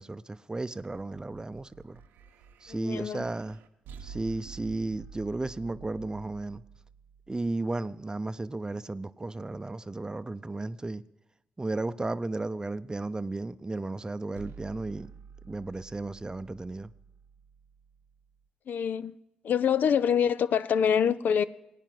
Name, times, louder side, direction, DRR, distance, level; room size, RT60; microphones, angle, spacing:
voice 1, 0.0-2.0 2.6-3.6 4.0-6.6 7.3-11.0 11.6-15.1 15.4-16.9, right 2 dB, 25° right, 0.6 m, -34 dB
sound 1, 0.8-8.1 14.3-18.4, right 6 dB, 85° right, 0.7 m, -50 dB
voice 2, 2.7-3.2 18.7-19.1 19.4-21.4, left 8 dB, 65° left, 0.5 m, -25 dB
19.0 x 9.1 x 7.7 m
supercardioid pair, 50°, 3 cm